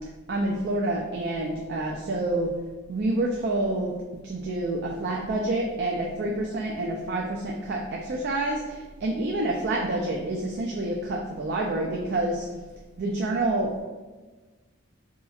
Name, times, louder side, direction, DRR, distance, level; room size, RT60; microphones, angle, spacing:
voice 1, 0.3-2.5 2.9-3.9 4.2-12.5 13.0-13.8, right 2 dB, 50° right, -1 dB, 0.3 m, -28 dB
4.1 x 2.9 x 2.3 m, 1.3 s
head